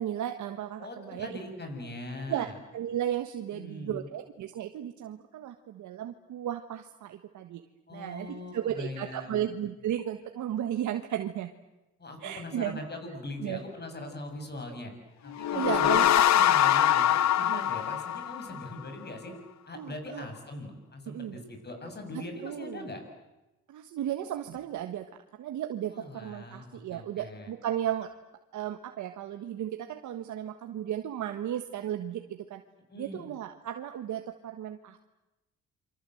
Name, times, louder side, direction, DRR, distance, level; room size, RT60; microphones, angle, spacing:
voice 1, 0.0-1.3 2.3-7.6 7.9-11.5 12.2-12.8 13.4-13.6 15.5-16.1 17.4-17.6 19.7-20.3 21.1-21.4 22.4-22.8 23.7-25.0 25.4-28.1 28.5-32.6 33.0-35.0, right 11 dB, 75° right, 7 dB, 1.5 m, -34 dB
voice 2, 0.8-2.5 3.5-4.1 7.9-9.5 12.0-14.9 15.2-19.3 19.7-23.0 25.9-27.5 32.9-33.3, left 2 dB, 35° left, 5 dB, 7.5 m, -41 dB
sound 1, 15.3-18.8, left 11 dB, 65° left, 0.8 m, -24 dB
28.5 x 24.5 x 7.9 m, 1.0 s
cardioid pair, 90°, 30 cm